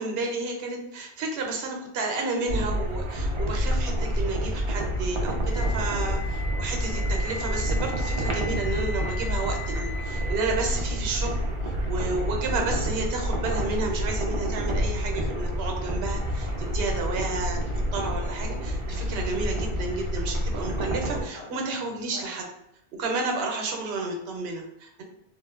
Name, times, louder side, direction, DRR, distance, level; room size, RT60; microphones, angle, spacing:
voice 1, 0.0-11.4 11.6-17.6 17.9-22.5 23.0-25.0, right 3 dB, 75° right, 2 dB, 0.8 m, -31 dB
sound 1, 2.5-21.2, equal, 50° right, 0.4 m, -28 dB
Wind instrument woodwind instrument, 5.4-11.4, left 2 dB, 65° left, 1.1 m, -40 dB
sound 2, 15.1-22.3, left 3 dB, 50° left, 0.3 m, -49 dB
2.9 x 2.0 x 2.3 m, 0.84 s
omnidirectional pair, 1.1 m